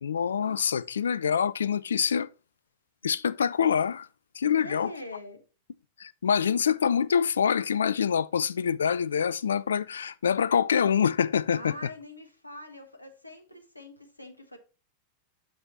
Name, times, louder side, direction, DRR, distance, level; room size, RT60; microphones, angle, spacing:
voice 1, 0.0-2.3 3.0-4.1 4.4-4.9 6.0-11.7, left 7 dB, 70° left, 0.3 m, -25 dB
voice 2, 4.4-5.4 11.5-14.6, left 1 dB, 85° left, 1.2 m, -43 dB
6.9 x 6.1 x 4.0 m
figure-of-eight pair, 90°, 0 cm